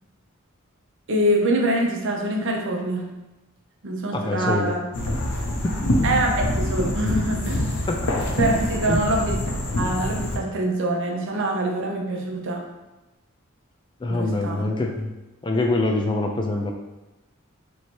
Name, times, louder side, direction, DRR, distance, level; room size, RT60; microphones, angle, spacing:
voice 1, 1.1-3.1 3.8-4.8 6.0-7.9 8.4-9.4 9.8-12.6 14.1-14.7, right 1 dB, 60° right, 0 dB, 0.7 m, -24 dB
voice 2, 4.1-4.7 7.9-8.0 8.9-9.1 14.0-15.1 15.4-16.7, left 2 dB, 20° left, 2 dB, 0.3 m, -24 dB
sound 1, 4.9-10.4, left 1 dB, 90° left, 0.6 m, -25 dB
3.1 x 2.8 x 4.4 m, 1.0 s
head